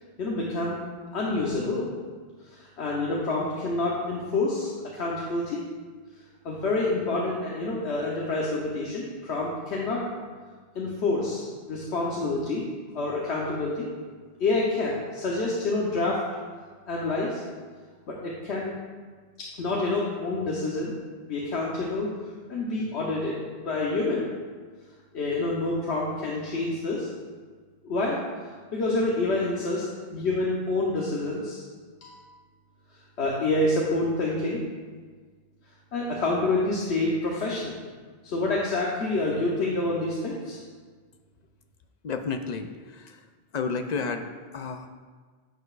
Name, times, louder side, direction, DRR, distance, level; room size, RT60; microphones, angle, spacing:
voice 1, 0.2-0.8 1.1-1.9 2.4-5.6 6.4-10.0 10.7-12.6 12.9-13.9 14.4-16.2 16.9-17.4 18.1-18.7 19.4-20.9 21.3-22.1 22.5-23.3 23.6-24.2 25.1-27.1 27.8-28.2 28.4-29.8 30.1-31.6 32.0-32.4 33.2-34.6 35.9-37.7 38.2-40.6, left 2 dB, 90° left, -4 dB, 1.2 m, -27 dB
voice 2, 42.0-43.2 43.5-44.3 44.5-44.9, left 5 dB, 55° left, 7 dB, 0.5 m, -31 dB
10.5 x 6.6 x 2.4 m, 1.5 s
omnidirectional pair, 1.1 m